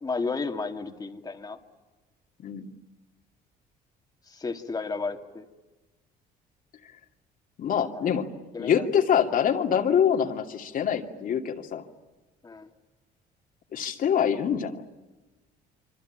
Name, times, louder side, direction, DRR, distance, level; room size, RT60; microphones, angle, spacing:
voice 1, 0.0-1.6 4.3-5.4 7.8-8.1 8.5-8.9 12.4-12.7, left 4 dB, 20° left, 3 dB, 2.5 m, -33 dB
voice 2, 7.6-8.3 8.6-11.8 13.7-14.8, left 8 dB, 55° left, 3 dB, 2.6 m, -25 dB
26.0 x 25.5 x 9.0 m, 1.1 s
cardioid pair, 110°, 17 cm